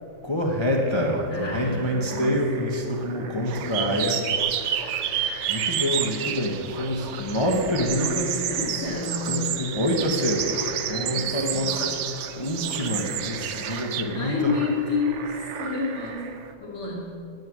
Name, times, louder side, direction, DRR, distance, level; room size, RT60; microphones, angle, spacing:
voice 1, 0.2-4.2 5.5-8.8 9.3-11.9 12.3-14.5, equal, 25° left, 0 dB, 0.7 m, -26 dB
sound 1, 0.7-16.5, right 5 dB, 55° right, 0.8 m, -40 dB
voice 2, 1.3-2.3 3.2-3.4 8.4-9.4 11.1-11.7 14.1-17.1, left 4 dB, 55° left, -9 dB, 2.7 m, -30 dB
sound 2, 3.5-14.0, right 9 dB, 75° right, 1.2 m, -30 dB
10.5 x 9.1 x 6.1 m, 2.7 s
omnidirectional pair, 1.9 m